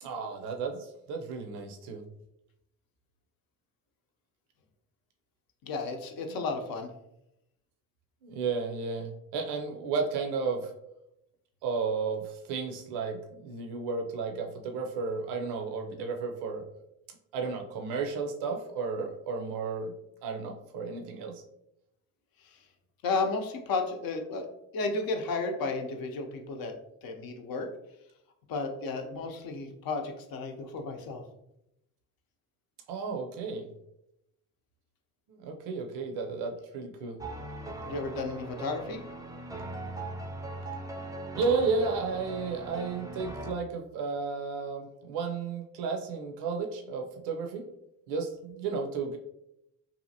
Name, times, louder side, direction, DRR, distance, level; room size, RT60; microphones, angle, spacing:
voice 1, 0.0-2.0 8.2-10.7 11.6-16.6 17.3-19.9 20.2-21.4 32.9-33.7 35.3-37.2 41.3-47.7 48.1-49.2, right 4 dB, 75° right, 3 dB, 0.5 m, -33 dB
voice 2, 5.6-6.9 22.4-22.6 23.0-24.5 24.7-26.7 27.0-27.7 28.5-31.2 37.9-39.0, left 3 dB, 60° left, 4 dB, 0.6 m, -33 dB
sound 1, 37.2-43.5, right 2 dB, 10° right, 0.4 m, -40 dB
2.7 x 2.5 x 2.7 m, 0.83 s
hypercardioid pair, 55°, 40 cm